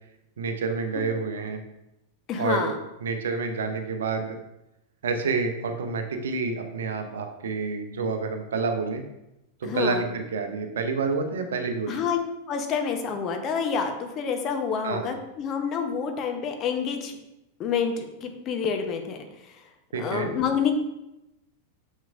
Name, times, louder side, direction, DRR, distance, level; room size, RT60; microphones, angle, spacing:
voice 1, 0.4-1.6 2.4-2.7 3.0-4.4 5.0-9.0 9.6-11.9 14.8-15.1 19.9-20.3, right 4 dB, 65° right, 6 dB, 0.7 m, -28 dB
voice 2, 2.3-2.8 9.6-10.1 11.9-12.2 12.5-17.2 17.6-19.6 19.9-20.7, left 6 dB, 30° left, 5 dB, 0.9 m, -28 dB
6.6 x 6.0 x 2.5 m, 0.90 s
figure-of-eight pair, 90°, 0 cm